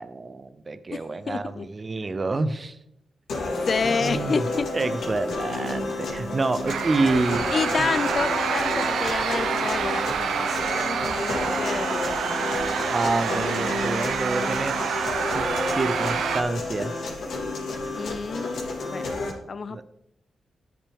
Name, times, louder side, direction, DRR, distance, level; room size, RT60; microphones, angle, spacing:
voice 1, 0.0-2.8 3.9-4.5 4.7-7.4 7.8-7.9 12.9-14.8 15.3-17.1 19.7-19.8, right 3 dB, 35° right, 13 dB, 0.5 m, -28 dB
voice 2, 0.9-1.7 3.6-4.7 7.5-12.4 17.9-19.1 19.5-19.8, left 5 dB, 45° left, 15 dB, 0.5 m, -29 dB
sound 1, 3.3-19.3, left 2 dB, 80° left, 3.2 m, -30 dB
sound 2, 6.7-16.4, right 7 dB, 85° right, 0.6 m, -27 dB
13.0 x 5.9 x 3.5 m, 0.81 s
cardioid pair, 100°, 0 cm